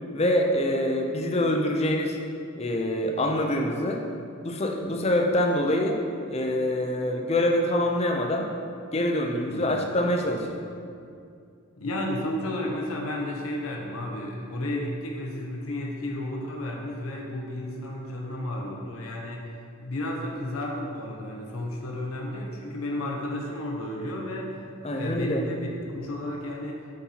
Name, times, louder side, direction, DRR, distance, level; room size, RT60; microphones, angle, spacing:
voice 1, 0.1-2.2 2.6-4.0 4.4-6.0 6.3-8.5 8.9-10.6 24.8-25.4, left 1 dB, 30° left, 2 dB, 0.6 m, -25 dB
voice 2, 9.5-9.8 11.8-19.5 19.8-24.6 24.9-25.7 25.9-26.8, left 1 dB, 85° left, -1 dB, 0.9 m, -32 dB
9.7 x 4.3 x 4.2 m, 2.4 s
head